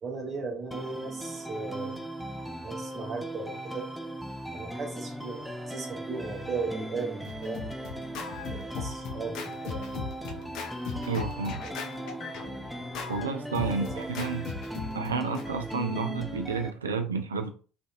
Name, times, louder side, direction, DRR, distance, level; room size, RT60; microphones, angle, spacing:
voice 1, 0.0-2.2 2.6-3.9 4.5-7.6 8.5-9.9 11.6-11.8 13.5-14.1, right 4 dB, 35° right, 1 dB, 0.7 m, -37 dB
sound 1, 0.7-16.7, right 1 dB, ahead, 0.4 m, -38 dB
Scratching (performance technique), 7.0-15.5, left 5 dB, 55° left, 0.5 m, -39 dB
voice 2, 11.1-11.6 13.1-14.5 14.9-17.5, right 4 dB, 85° right, 6 dB, 0.3 m, -31 dB
2.6 x 2.5 x 2.4 m, 0.37 s
figure-of-eight pair, 60°, 0 cm